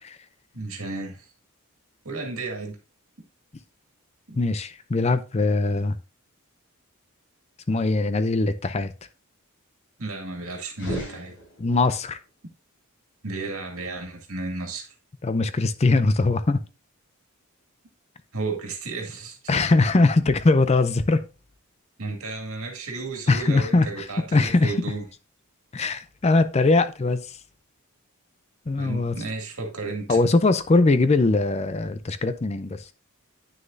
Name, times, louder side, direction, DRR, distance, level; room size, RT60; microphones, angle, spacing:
voice 1, 0.5-1.3 2.0-2.8 4.3-4.4 10.0-11.3 13.2-14.9 18.3-19.5 22.0-25.0 28.8-30.2, right 3 dB, 75° right, 2.2 m, -33 dB
voice 2, 4.4-6.0 7.7-8.9 11.6-12.2 15.2-16.6 19.5-21.2 23.3-24.7 25.7-27.4 28.7-29.2 30.1-32.8, left 3 dB, 30° left, 0.4 m, -21 dB
sound 1, 10.7-12.0, equal, 55° left, 4.9 m, -35 dB
9.3 x 6.5 x 2.6 m
head